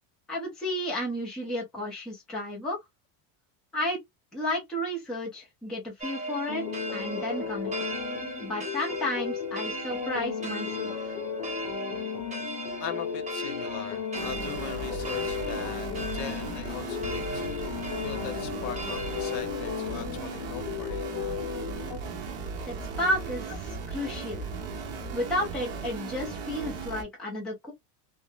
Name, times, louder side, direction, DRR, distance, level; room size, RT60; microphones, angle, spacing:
voice 1, 0.3-2.8 3.7-4.0 4.3-6.6 6.9-7.7 8.4-11.1 22.7-24.4 25.1-27.7, left 1 dB, ahead, 0.4 m, -32 dB
sound 1, 6.0-19.4, right 2 dB, 15° right, 1.2 m, -38 dB
sound 2, 6.5-22.0, left 8 dB, 50° left, 0.8 m, -35 dB
voice 2, 12.8-15.9 16.1-21.0, left 9 dB, 90° left, 0.9 m, -40 dB
sound 3, 14.1-27.0, right 4 dB, 30° right, 0.8 m, -37 dB
3.5 x 2.1 x 2.4 m
cardioid pair, 175°, 49 cm